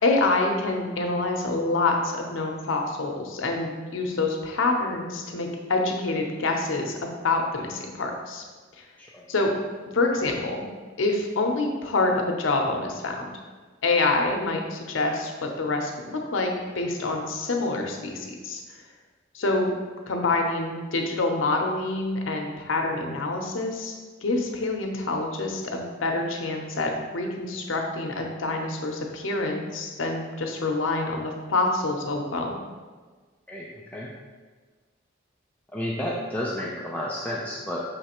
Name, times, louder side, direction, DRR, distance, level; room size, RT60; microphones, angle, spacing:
voice 1, 0.0-8.4 8.8-8.9 9.3-9.5 9.9-10.7 11.0-13.3 13.8-18.6 19.3-19.7 20.1-23.9 24.2-32.5, left 2 dB, 80° left, 2 dB, 0.7 m, -26 dB
voice 2, 33.5-34.1 35.7-37.8, left 1 dB, 5° left, -4 dB, 0.4 m, -31 dB
5.5 x 3.2 x 2.9 m, 1.4 s
head